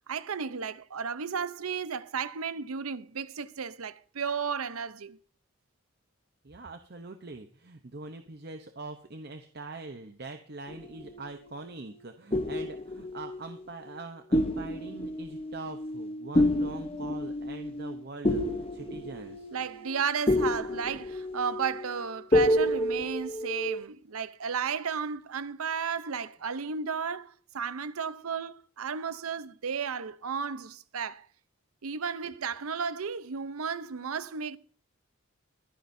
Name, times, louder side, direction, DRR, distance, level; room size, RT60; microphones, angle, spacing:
voice 1, 0.1-5.2 19.5-31.3 31.8-34.6, right 6 dB, 90° right, 0.7 m, -33 dB
voice 2, 6.4-19.5, right 3 dB, 50° right, 0.8 m, -43 dB
sound 1, 10.7-11.7 12.3-14.0 14.3-23.8, left 1 dB, 25° left, 0.8 m, -30 dB
23.0 x 9.8 x 2.7 m
head